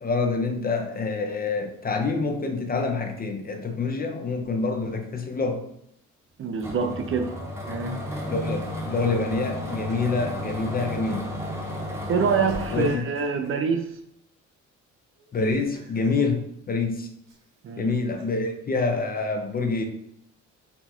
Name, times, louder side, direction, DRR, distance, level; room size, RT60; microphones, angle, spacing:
voice 1, 0.0-5.7 8.3-11.3 12.7-13.1 15.3-17.1 17.8-19.9, left 3 dB, 30° left, 4 dB, 0.6 m, -26 dB
voice 2, 6.4-7.3 7.7-8.0 12.1-13.9 17.6-17.9, right 5 dB, 45° right, 7 dB, 0.5 m, -25 dB
sound 1, 6.6-12.9, left 1 dB, 10° right, 0.9 m, -33 dB
Laughter, 6.8-7.2 9.5-10.4 10.8-11.0 12.5-13.6 15.2-16.2 17.3-18.5, right 3 dB, 60° right, 1.1 m, -45 dB
4.1 x 2.2 x 4.3 m, 0.74 s
cardioid pair, 90°, 30 cm